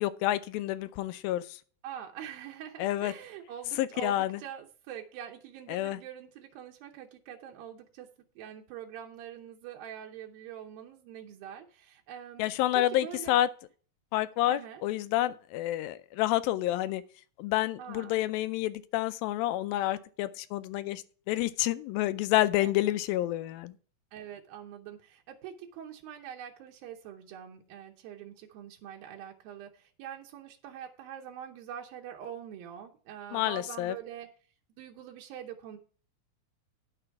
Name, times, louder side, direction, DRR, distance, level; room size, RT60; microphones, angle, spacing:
voice 1, 0.0-1.4 2.8-3.1 3.8-4.4 5.7-6.0 12.4-13.5 14.1-17.0 17.4-23.7 33.3-34.0, left 14 dB, 85° left, 2.3 m, -29 dB
voice 2, 1.8-8.1 8.4-12.5 12.8-13.4 14.5-14.8 17.8-18.2 22.6-22.7 24.1-34.3 34.8-35.8, right 9 dB, 85° right, 2.7 m, -44 dB
9.9 x 6.7 x 4.6 m
omnidirectional pair, 4.1 m